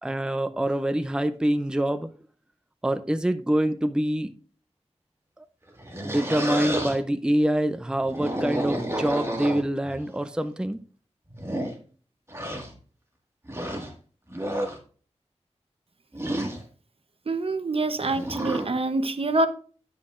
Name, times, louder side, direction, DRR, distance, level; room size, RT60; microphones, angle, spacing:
voice 1, 0.0-2.1 2.8-4.3 5.4-5.5 6.0-10.8, right 1 dB, 5° right, 0.5 m, -25 dB
sound 1, 5.7-7.0 8.0-9.9 10.7-10.8 11.3-11.7 12.3-12.7 13.4-13.9 14.3-14.8 16.1-16.6 18.0-18.7, right 1 dB, 20° right, 1.7 m, -30 dB
voice 2, 17.3-19.5, right 2 dB, 55° right, 0.9 m, -25 dB
9.7 x 8.3 x 2.5 m
wide cardioid pair, 80°, 11 cm